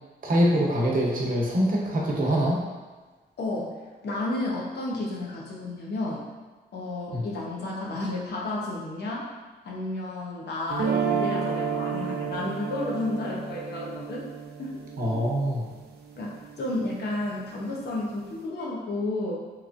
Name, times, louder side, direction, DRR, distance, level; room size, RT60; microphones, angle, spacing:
voice 1, 0.2-2.6 7.1-7.2 15.0-15.7, equal, 55° right, -3 dB, 0.8 m, -24 dB
voice 2, 3.4-3.7 4.0-6.2 6.7-9.3 9.6-14.2 14.6-14.8 16.2-19.4, left 2 dB, 75° left, -4 dB, 0.9 m, -31 dB
sound 1, 10.7-16.8, right 7 dB, 70° right, 0.4 m, -31 dB
3.2 x 3.1 x 2.5 m, 1.3 s
cardioid pair, 95°, 17 cm